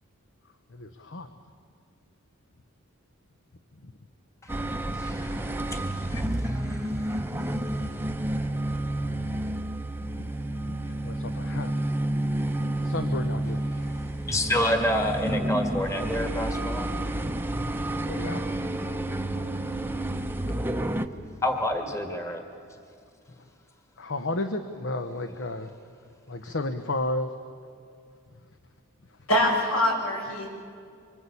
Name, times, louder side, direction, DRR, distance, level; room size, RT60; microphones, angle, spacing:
voice 1, 0.7-1.3 3.8-3.9 10.0-10.3 10.6-11.7 12.8-13.6 18.1-18.7 20.6-20.9 24.0-25.7 26.3-27.3, left 2 dB, 60° left, 8 dB, 1.0 m, -33 dB
sound 1, 4.5-21.1, right 1 dB, 10° right, 0.8 m, -30 dB
voice 2, 4.8-6.2 6.5-6.8 14.3-16.9 21.4-22.4, left 1 dB, 15° left, 4 dB, 1.8 m, -28 dB
voice 3, 29.3-30.5, left 1 dB, 75° left, -1 dB, 6.7 m, -24 dB
25.5 x 25.5 x 8.4 m, 2.3 s
head